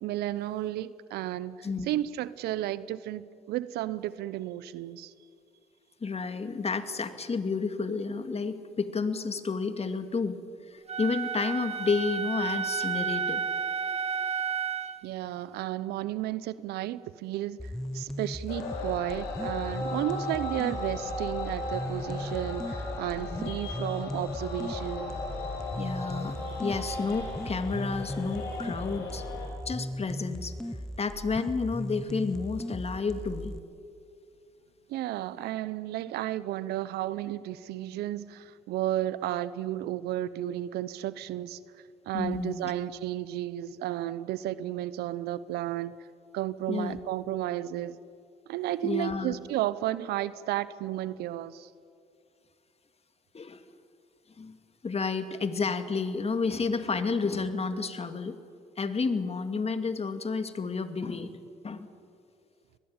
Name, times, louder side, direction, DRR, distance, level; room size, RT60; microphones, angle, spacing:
voice 1, 0.0-1.6 1.9-5.1 15.0-25.1 34.9-41.6 42.1-46.0 46.3-48.0 48.5-51.7, right 13 dB, 80° right, 0.8 m, -33 dB
voice 2, 6.0-10.4 10.7-13.4 23.3-23.6 25.8-29.2 29.7-30.5 31.0-33.5 42.1-42.7 46.7-47.0 48.8-49.3 53.3-53.6 54.4-54.6 54.8-58.4 58.8-61.4 61.6-61.9, left 4 dB, 40° left, 2.3 m, -31 dB
Wind instrument woodwind instrument, 10.9-15.0, right 6 dB, 40° right, 1.8 m, -31 dB
sound 1, 17.6-33.6, equal, 5° left, 1.0 m, -37 dB
sound 2, 18.5-29.5, left 3 dB, 85° left, 5.5 m, -37 dB
23.5 x 20.5 x 9.0 m
hypercardioid pair, 50°, 17 cm